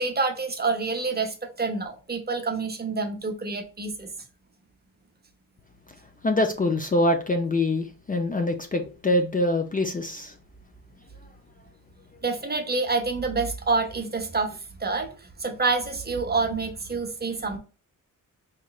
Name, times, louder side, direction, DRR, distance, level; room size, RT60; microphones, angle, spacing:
voice 1, 0.0-4.1 12.2-17.6, right 4 dB, 30° right, 0.8 m, -27 dB
voice 2, 6.2-10.3, left 1 dB, 25° left, 0.4 m, -24 dB
4.4 x 3.1 x 2.3 m
cardioid pair, 105°, 35 cm